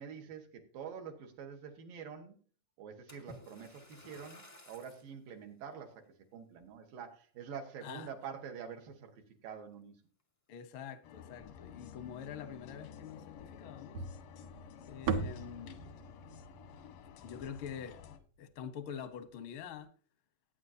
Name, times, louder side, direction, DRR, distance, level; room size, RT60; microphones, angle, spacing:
voice 1, 0.0-2.3 2.8-6.0 6.3-10.0, right 7 dB, 85° right, 3.3 m, -46 dB
Splash splatter, 3.1-5.1 5.8-6.0 6.6-6.7, left 1 dB, 25° left, 0.6 m, -55 dB
voice 2, 10.5-14.0 14.9-15.8 17.0-18.0 18.4-19.9, left 8 dB, 70° left, 1.2 m, -45 dB
sound 1, 11.0-18.2, left 8 dB, 90° left, 2.8 m, -52 dB
sound 2, 13.9-18.2, right 5 dB, 65° right, 1.7 m, -40 dB
19.0 x 9.0 x 2.8 m
omnidirectional pair, 3.8 m